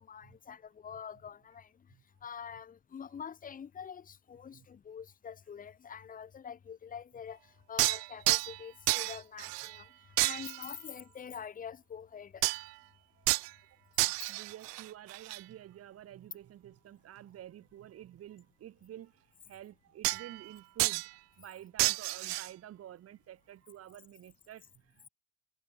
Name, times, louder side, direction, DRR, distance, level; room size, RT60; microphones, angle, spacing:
voice 1, 0.0-1.7 2.2-7.4 7.7-9.9 10.2-12.4, left 7 dB, 20° left, 2.2 m, -45 dB
sound 1, 7.8-8.6 8.9-9.8 10.2-10.7 12.4-12.7 13.3-13.5 14.0-15.4 20.0-20.5 20.8-21.1 21.8-22.5, right 24 dB, 85° right, 1.1 m, -31 dB
voice 2, 13.9-21.1 21.4-25.1, right 12 dB, 30° right, 4.0 m, -50 dB
cardioid pair, 165°, 46 cm